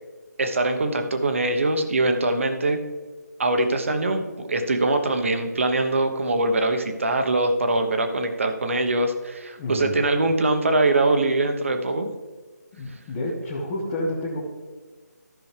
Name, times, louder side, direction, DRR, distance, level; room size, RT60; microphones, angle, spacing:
voice 1, 0.4-2.8 3.4-12.1, right 2 dB, 45° right, 6 dB, 1.1 m, -23 dB
voice 2, 9.6-10.0 12.7-14.4, left 1 dB, 15° left, -5 dB, 0.8 m, -29 dB
14.0 x 6.1 x 3.4 m, 1.3 s
figure-of-eight pair, 175°, 10 cm